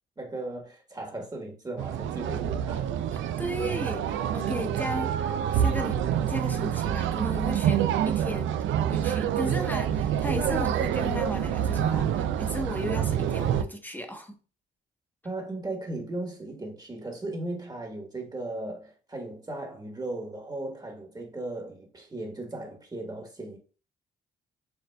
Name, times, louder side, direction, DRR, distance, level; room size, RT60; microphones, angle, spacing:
voice 1, 0.2-2.9 15.2-23.6, right 2 dB, 20° right, 1.3 m, -37 dB
sound 1, 1.8-13.6, right 9 dB, 75° right, 0.4 m, -27 dB
voice 2, 3.1-5.1 5.5-8.6 8.9-14.4, equal, 10° left, 0.9 m, -35 dB
6.7 x 2.5 x 2.2 m
cardioid pair, 90°, 20 cm